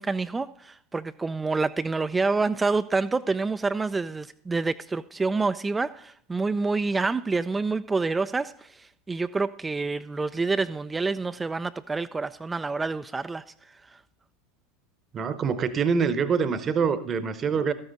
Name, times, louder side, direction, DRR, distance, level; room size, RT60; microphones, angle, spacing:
voice 1, 0.0-14.0, right 3 dB, 15° right, 12 dB, 0.3 m, -28 dB
voice 2, 15.1-17.7, right 6 dB, 30° right, 14 dB, 0.8 m, -25 dB
13.0 x 9.1 x 3.9 m, 0.66 s
figure-of-eight pair, 80°, 0 cm